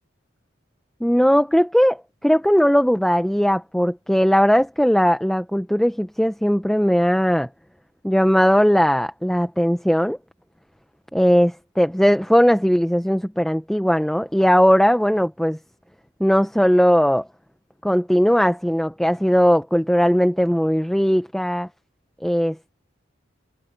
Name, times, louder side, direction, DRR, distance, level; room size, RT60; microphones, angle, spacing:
voice 1, 1.0-7.5 8.0-10.2 11.1-15.6 16.2-17.3 17.8-21.7 22.2-22.6, equal, ahead, 0.5 m, -18 dB
head